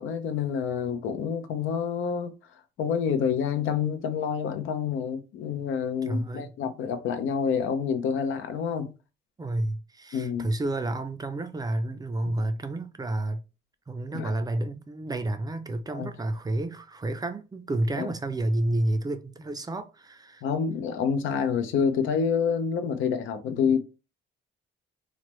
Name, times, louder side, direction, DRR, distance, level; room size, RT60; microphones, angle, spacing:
voice 1, 0.0-2.3 2.8-8.9 10.1-10.5 14.1-14.3 15.9-16.1 18.0-18.1 20.4-23.8, left 7 dB, 80° left, 0.6 m, -27 dB
voice 2, 6.0-6.5 9.4-13.4 13.9-20.4, right 1 dB, 20° right, 0.4 m, -30 dB
3.1 x 2.0 x 3.0 m
cardioid pair, 90°, 20 cm